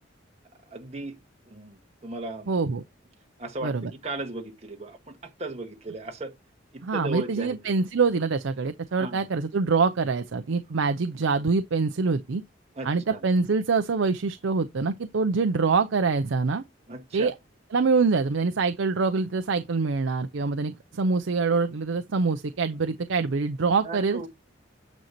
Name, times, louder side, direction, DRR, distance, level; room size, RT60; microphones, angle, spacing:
voice 1, 0.7-1.1 1.4-2.6 3.4-6.3 6.7-7.6 9.0-9.2 12.7-13.2 16.9-17.3 23.8-24.3, right 2 dB, 35° right, 1.7 m, -36 dB
voice 2, 2.5-2.8 3.6-3.9 6.8-12.4 12.8-16.6 17.1-17.3 17.7-24.3, right 4 dB, 85° right, 0.6 m, -25 dB
9.1 x 5.3 x 3.0 m
head